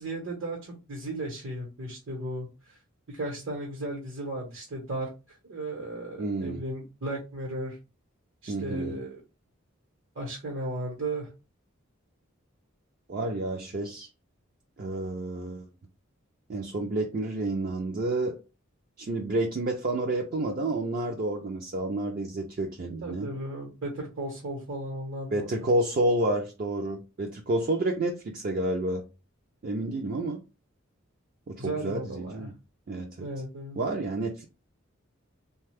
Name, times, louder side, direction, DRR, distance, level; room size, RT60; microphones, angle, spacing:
voice 1, 0.0-2.8 3.1-7.8 8.4-9.2 10.1-11.3 23.0-25.5 31.6-32.5 33.2-33.8, right 1 dB, 70° right, 1.0 m, -35 dB
voice 2, 6.2-6.6 8.5-9.0 13.1-14.1 14.8-15.6 16.5-18.4 19.0-23.3 25.3-29.1 29.6-30.4 31.5-32.5 32.9-33.3 33.8-34.4, right 2 dB, 45° right, 0.4 m, -29 dB
3.1 x 2.2 x 3.3 m
head